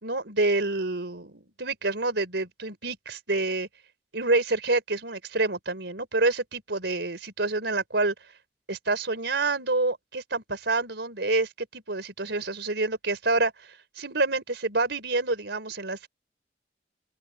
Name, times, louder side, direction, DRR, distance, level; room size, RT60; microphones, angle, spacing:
voice 1, 0.0-3.7 4.1-8.1 8.7-13.5 14.0-16.1, right 2 dB, 70° right, 4.7 m, -27 dB
open air
head